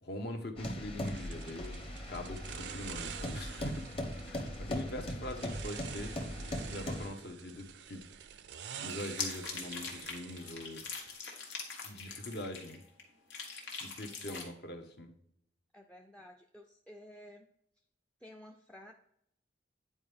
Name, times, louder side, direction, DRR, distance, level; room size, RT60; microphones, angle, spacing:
voice 1, 0.0-3.8 4.2-6.1 6.7-8.0 8.7-11.0 11.8-12.8 13.8-15.1, left 1 dB, 65° left, 4 dB, 1.1 m, -43 dB
sound 1, 0.6-7.1, left 1 dB, 30° left, 1.0 m, -40 dB
sound 2, 1.1-11.1, right 8 dB, 70° right, 0.5 m, -48 dB
sound 3, 8.9-13.0 13.3-14.4, left 5 dB, 90° left, 1.7 m, -42 dB
voice 2, 15.7-17.5 18.2-18.9, left 1 dB, 5° left, 4 dB, 0.4 m, -53 dB
9.8 x 4.4 x 3.5 m, 0.71 s
head